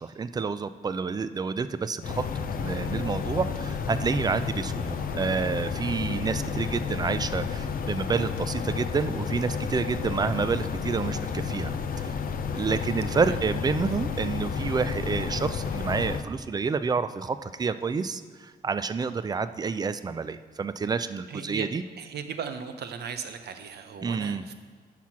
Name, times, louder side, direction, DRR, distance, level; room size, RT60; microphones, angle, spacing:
voice 1, 0.0-2.2 2.6-12.1 12.5-21.8 24.0-24.4, right 5 dB, 25° right, 13 dB, 0.3 m, -29 dB
sound 1, 2.0-16.2, left 6 dB, 60° left, 0.6 m, -31 dB
voice 2, 21.3-21.7 22.0-24.5, right 7 dB, 80° right, 8 dB, 0.7 m, -37 dB
10.5 x 5.9 x 5.8 m, 1.5 s
wide cardioid pair, 150°, 17 cm